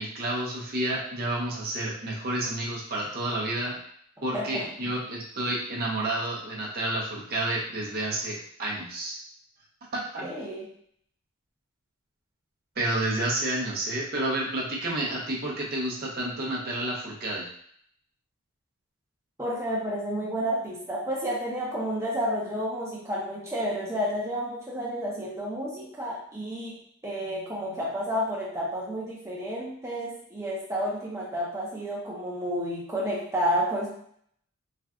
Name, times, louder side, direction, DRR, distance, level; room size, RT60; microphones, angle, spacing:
voice 1, 0.0-3.8 4.2-9.1 9.9-10.3 12.8-17.5, right 1 dB, 45° right, -4 dB, 0.7 m, -30 dB
voice 2, 4.3-4.9 10.2-10.7 19.4-26.8 27.0-33.9, equal, 15° right, -5 dB, 0.7 m, -31 dB
3.3 x 2.4 x 2.3 m, 0.65 s
head